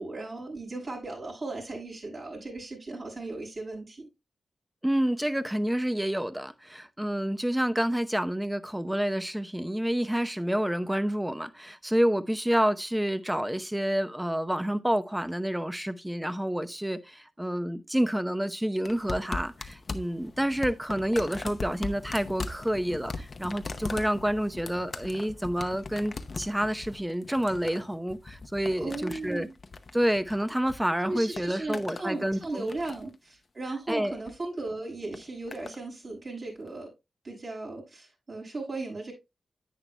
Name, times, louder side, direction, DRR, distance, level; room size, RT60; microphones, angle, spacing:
voice 1, 0.0-4.1 28.8-29.5 31.0-36.9 37.2-39.1, right 2 dB, 50° right, 5.8 m, -36 dB
voice 2, 4.8-29.5 29.9-32.7 33.9-34.2, equal, 10° right, 0.8 m, -28 dB
sound 1, 18.8-30.8 31.1-32.1 32.4-33.1 34.1-34.4 35.1-35.8 36.7-36.8, left 3 dB, 55° left, 0.8 m, -40 dB
10.5 x 8.8 x 2.2 m
cardioid pair, 65°, 0 cm